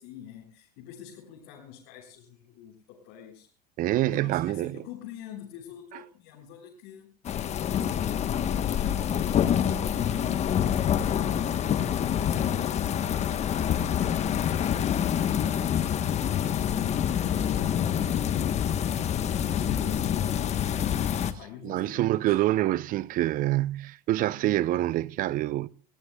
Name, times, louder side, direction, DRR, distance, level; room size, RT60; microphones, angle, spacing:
voice 1, 0.0-3.5 4.0-11.3 11.7-14.0 19.2-22.4, left 9 dB, 60° left, 7.1 m, -47 dB
voice 2, 3.8-4.8 21.6-25.7, right 15 dB, 40° right, 0.7 m, -26 dB
Thunder Storm, 7.2-21.3, left 9 dB, 30° left, 1.2 m, -26 dB
28.5 x 17.5 x 2.3 m
hypercardioid pair, 100°, 21 cm